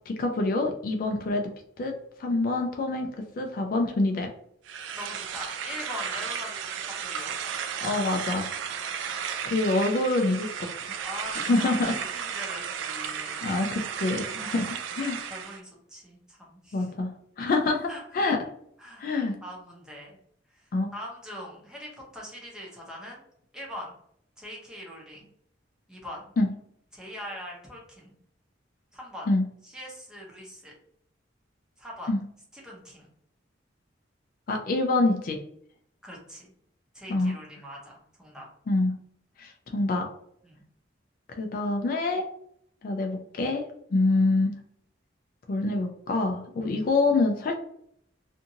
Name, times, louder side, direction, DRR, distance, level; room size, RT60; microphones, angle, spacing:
voice 1, 0.1-1.5 1.8-4.3 7.8-8.5 9.4-10.7 11.3-11.9 13.4-15.2 16.7-18.4 19.0-19.4 20.7-20.9 26.4-26.5 29.3-29.4 32.1-32.2 34.5-35.4 37.1-37.3 38.7-39.0 39.4-40.1 41.4-42.3 42.8-43.6 43.9-44.6 45.5-47.6, left 2 dB, 50° left, 4 dB, 0.3 m, -26 dB
sound 1, 4.7-15.6, right 7 dB, 80° right, 0.3 m, -34 dB
voice 2, 4.9-7.4 11.0-13.5 14.4-16.9 17.9-18.0 18.8-19.1 19.4-20.1 20.5-23.2 23.5-23.9 24.4-25.3 25.9-26.3 26.9-28.2 28.9-29.3 29.6-30.7 31.8-32.1 32.6-33.1 36.0-36.5 36.9-38.5 40.4-40.6 43.9-44.2, equal, 5° right, -3 dB, 0.7 m, -42 dB
2.6 x 2.5 x 2.7 m, 0.69 s
head